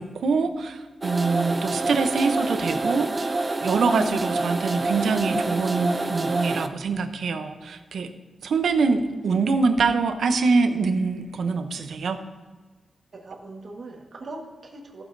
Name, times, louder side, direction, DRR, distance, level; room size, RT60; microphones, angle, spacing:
voice 1, 0.0-3.3 3.6-8.1 8.4-12.2, right 4 dB, 85° right, 8 dB, 0.7 m, -24 dB
sound 1, 1.0-6.7, right 2 dB, 25° right, 0.4 m, -27 dB
voice 2, 13.1-15.0, right 2 dB, 50° right, 1 dB, 1.5 m, -40 dB
15.0 x 7.2 x 2.7 m, 1.3 s
wide cardioid pair, 165°, 0 cm